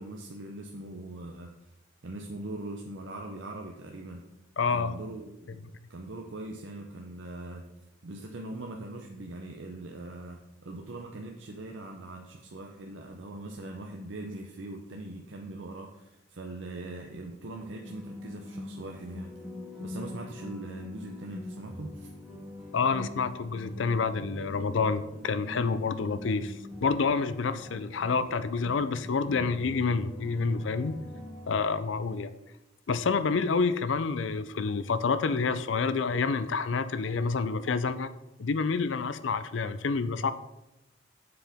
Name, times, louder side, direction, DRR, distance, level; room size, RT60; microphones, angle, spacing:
voice 1, 0.0-1.5 2.0-4.2 4.7-5.6 5.9-7.7 8.0-19.3 19.8-22.1, right 2 dB, 80° right, 1 dB, 0.7 m, -41 dB
voice 2, 4.6-4.9 22.7-31.0 31.5-32.3 32.9-38.1 38.4-40.3, left 4 dB, 80° left, 13 dB, 0.5 m, -28 dB
sound 1, 17.4-31.6, left 1 dB, 5° left, 2.5 m, -43 dB
7.6 x 6.8 x 3.5 m, 0.93 s
head